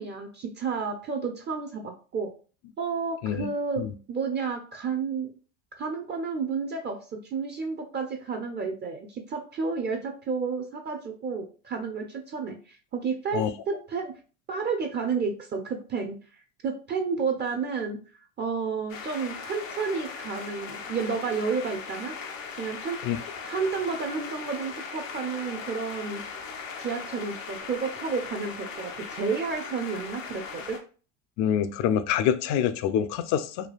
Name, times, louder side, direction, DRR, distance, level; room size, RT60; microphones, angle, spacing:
voice 1, 0.0-2.3 2.8-3.8 4.1-5.3 5.8-14.1 14.5-18.0 18.4-22.1 22.6-23.0 23.4-26.2 26.8-30.8, right 5 dB, 30° right, 0.5 m, -31 dB
sound 1, 18.9-30.8, left 5 dB, 90° left, 0.6 m, -39 dB
voice 2, 31.4-33.7, left 9 dB, 50° left, 0.4 m, -26 dB
3.3 x 2.3 x 2.3 m
hypercardioid pair, 75°, 38 cm